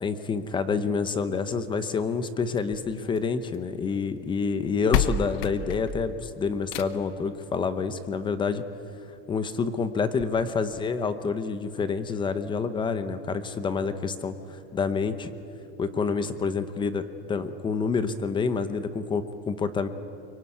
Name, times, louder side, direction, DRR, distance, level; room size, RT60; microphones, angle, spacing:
voice 1, 0.0-8.6 9.3-15.3 15.8-19.9, left 5 dB, 15° left, 11 dB, 0.8 m, -28 dB
sound 1, 2.5-3.7 4.6-4.7 4.9-7.2 8.5-8.6 9.1-9.2 9.5-9.6 10.2-10.3, left 8 dB, 60° left, 1.1 m, -30 dB
24.0 x 23.5 x 9.6 m, 2.7 s
cardioid pair, 175°, 32 cm